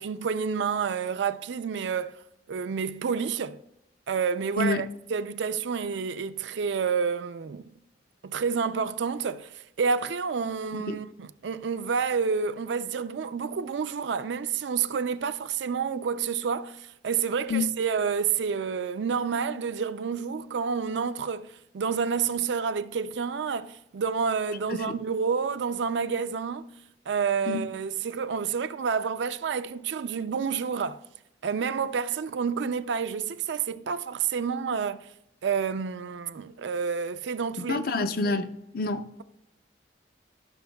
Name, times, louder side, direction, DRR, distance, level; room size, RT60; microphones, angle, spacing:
voice 1, 0.0-2.2 2.5-3.6 4.1-7.7 8.2-26.7 27.1-31.0 31.4-35.1 35.4-37.9, right 6 dB, 75° right, 0.4 m, -29 dB
voice 2, 37.7-39.1, left 3 dB, 55° left, 0.5 m, -28 dB
15.0 x 6.2 x 2.3 m
head